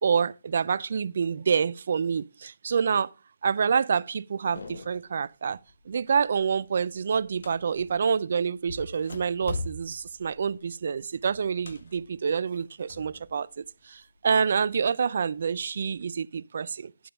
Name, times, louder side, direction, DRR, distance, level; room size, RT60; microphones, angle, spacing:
voice 1, 0.0-3.1 3.4-5.6 5.9-17.1, right 6 dB, 50° right, 0.5 m, -27 dB
sound 1, 4.5-5.2 5.5-5.9 6.3-8.1 8.6-13.3 13.6-14.6 15.2-16.0, left 3 dB, 50° left, 1.9 m, -41 dB
12.0 x 8.8 x 3.5 m
figure-of-eight pair, 160°, 0 cm